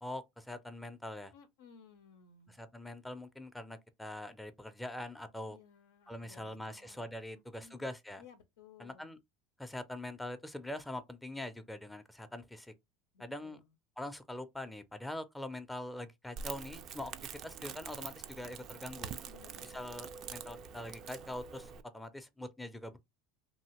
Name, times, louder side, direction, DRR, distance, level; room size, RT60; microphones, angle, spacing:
voice 1, 0.0-1.3 2.5-5.6 6.1-8.2 8.8-9.2 9.6-12.7 13.2-13.6 14.0-19.1 19.7-23.0, left 1 dB, 5° left, 0.5 m, -43 dB
voice 2, 1.3-2.6 5.5-7.0 7.3-7.9 8.2-9.2 13.1-13.7 19.2-19.8, left 6 dB, 80° left, 0.5 m, -59 dB
Crackle, 16.4-21.8, right 7 dB, 50° right, 0.4 m, -45 dB
2.7 x 2.7 x 2.9 m
hypercardioid pair, 90°, 0 cm